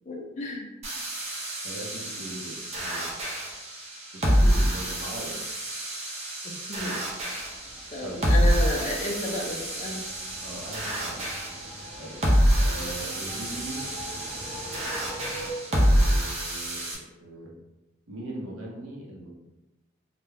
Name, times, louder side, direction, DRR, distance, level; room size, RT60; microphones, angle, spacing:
voice 1, 0.1-0.7 6.4-7.0 7.9-10.0, left 1 dB, 35° left, -1 dB, 0.4 m, -32 dB
sound 1, 0.8-16.9, equal, 30° right, 0.4 m, -27 dB
voice 2, 1.6-3.3 4.1-5.4 8.0-8.3 10.4-11.2 12.0-12.2 12.5-13.8 15.7-17.5 18.1-19.3, right 1 dB, 75° right, -2 dB, 0.6 m, -40 dB
sound 2, 7.3-15.5, equal, 5° left, 0.7 m, -43 dB
2.2 x 2.1 x 3.2 m, 1.0 s
head